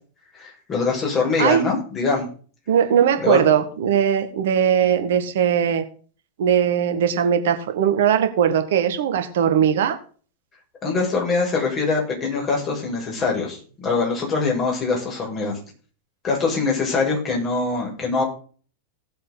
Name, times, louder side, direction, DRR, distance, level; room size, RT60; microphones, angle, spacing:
voice 1, 0.4-2.3 3.2-3.4 10.8-15.6 16.2-18.2, left 4 dB, 30° left, -1 dB, 6.5 m, -23 dB
voice 2, 2.7-5.8 6.4-10.0, right 8 dB, 55° right, 8 dB, 1.8 m, -19 dB
17.5 x 7.6 x 3.9 m, 0.41 s
figure-of-eight pair, 90°, 0 cm